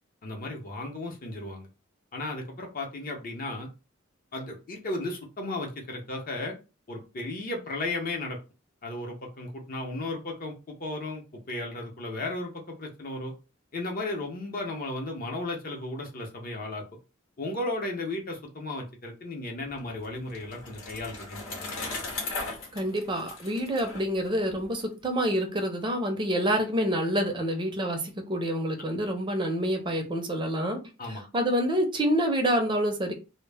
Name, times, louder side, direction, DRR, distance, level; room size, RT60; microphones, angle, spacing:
voice 1, 0.2-1.7 2.1-3.7 4.3-6.6 6.9-8.4 8.8-11.2 11.5-13.3 13.7-16.8 17.4-21.7 31.0-31.2, left 2 dB, 45° left, 1 dB, 0.6 m, -35 dB
Bicycle, 19.7-24.8, left 3 dB, 85° left, 0.9 m, -38 dB
voice 2, 22.7-30.8 31.3-33.1, equal, 25° right, 4 dB, 0.5 m, -27 dB
2.1 x 2.0 x 3.3 m, 0.30 s
head